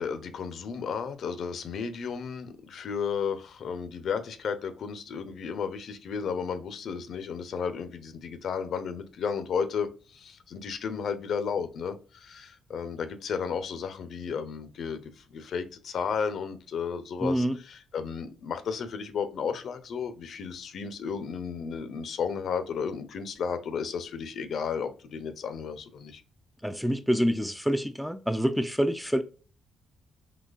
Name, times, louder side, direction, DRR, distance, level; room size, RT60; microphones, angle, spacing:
voice 1, 0.0-26.2, left 6 dB, 65° left, 0.5 m, -33 dB
voice 2, 17.2-17.6 26.6-29.2, equal, ahead, 0.3 m, -26 dB
3.9 x 2.9 x 2.3 m
cardioid pair, 90°, 0 cm